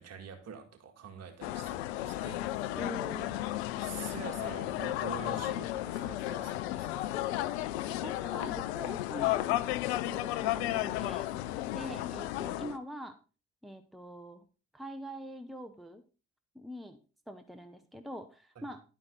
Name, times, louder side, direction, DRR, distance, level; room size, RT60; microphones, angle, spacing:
voice 1, 0.0-2.8 3.8-7.2 11.8-12.1 18.6-18.7, right 6 dB, 45° right, 7 dB, 2.1 m, -46 dB
sound 1, 1.4-12.8, left 15 dB, 70° left, 0.6 m, -33 dB
voice 2, 2.7-3.3 8.0-9.6 9.9-11.3 11.7-13.2 13.6-14.4 14.7-16.0 16.5-17.0 17.3-18.8, equal, ahead, 8 dB, 1.1 m, -44 dB
11.0 x 9.0 x 3.9 m, 0.33 s
figure-of-eight pair, 45°, 35 cm